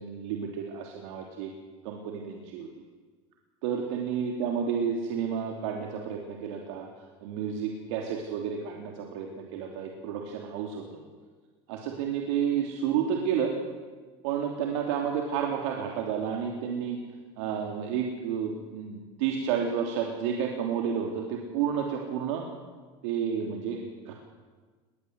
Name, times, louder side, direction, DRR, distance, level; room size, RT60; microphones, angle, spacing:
voice 1, 0.0-1.5 1.8-2.7 3.6-6.9 7.2-11.0 11.7-13.5 14.2-17.0 17.4-22.4 23.0-24.1, right 7 dB, 80° right, 2 dB, 3.2 m, -31 dB
20.5 x 20.5 x 8.2 m, 1.4 s
supercardioid pair, 130°, 15 cm